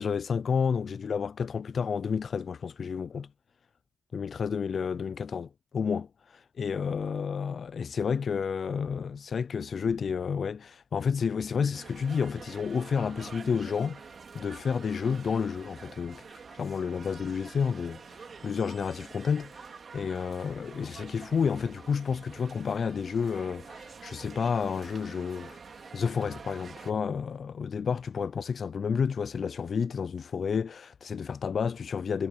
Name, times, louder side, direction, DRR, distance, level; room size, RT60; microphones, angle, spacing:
voice 1, 0.0-3.3 4.1-14.1 14.3-25.6 25.9-32.3, left 6 dB, 55° left, 0.4 m, -30 dB
sound 1, 11.7-26.9, right 5 dB, 50° right, 3.9 m, -47 dB
cardioid pair, 80°, 0 cm